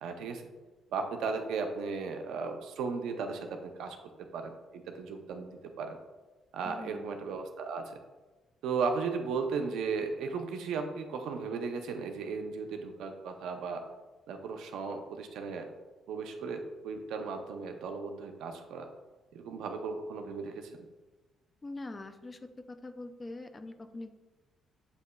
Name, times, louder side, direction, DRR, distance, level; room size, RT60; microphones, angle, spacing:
voice 1, 0.0-0.4 0.9-4.0 4.3-6.0 6.5-7.8 8.6-13.8 14.3-15.7 16.1-18.9 19.3-20.7, right 5 dB, 85° right, 5 dB, 0.5 m, -36 dB
voice 2, 6.6-7.1 21.6-22.4 22.7-24.1, left 2 dB, 25° left, 8 dB, 0.4 m, -43 dB
7.6 x 2.8 x 2.2 m, 1.2 s
cardioid pair, 90°, 0 cm